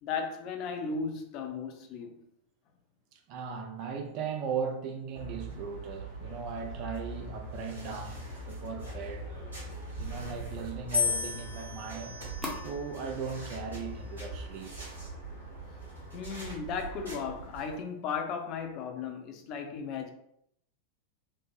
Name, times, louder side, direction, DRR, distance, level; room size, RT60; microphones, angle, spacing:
voice 1, 0.0-2.1 16.1-20.1, left 5 dB, 40° left, 5 dB, 0.4 m, -36 dB
voice 2, 3.1-9.3 10.0-12.1 12.6-14.8, right 6 dB, 40° right, 4 dB, 0.5 m, -38 dB
sound 1, 5.1-17.7, right 3 dB, 70° right, 1.4 m, -43 dB
sound 2, 5.2-14.5, left 3 dB, 5° right, 0.8 m, -45 dB
sound 3, 10.9-13.1 13.9-14.5, left 6 dB, 85° right, 0.6 m, -34 dB
3.1 x 2.1 x 3.1 m, 0.73 s
figure-of-eight pair, 90°, 0 cm